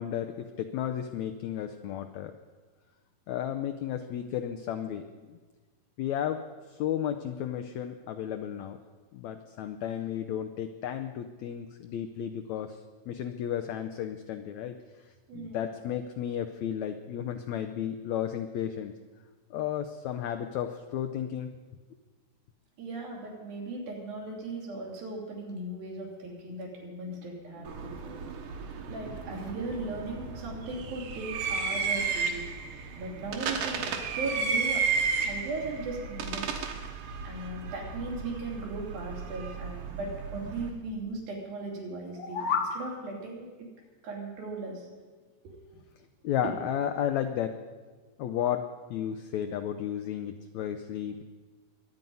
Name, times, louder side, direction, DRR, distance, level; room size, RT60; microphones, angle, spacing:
voice 1, 0.0-2.3 3.3-5.0 5.3-5.4 6.0-6.4 6.7-8.8 9.1-12.8 13.1-14.8 15.3-18.9 19.5-21.5 46.2-47.5 48.2-51.2, left 10 dB, 90° left, 7 dB, 1.6 m, -33 dB
voice 2, 22.8-28.2 28.8-34.8 35.2-36.7 37.2-43.7 44.0-44.9 45.4-45.5 46.4-46.5, right 2 dB, 90° right, -2 dB, 4.9 m, -38 dB
sound 1, 27.6-40.7, right 5 dB, 70° right, 2.8 m, -33 dB
sound 2, 42.0-42.8, left 6 dB, 60° left, 1.7 m, -30 dB
23.0 x 9.2 x 5.4 m, 1.4 s
omnidirectional pair, 4.0 m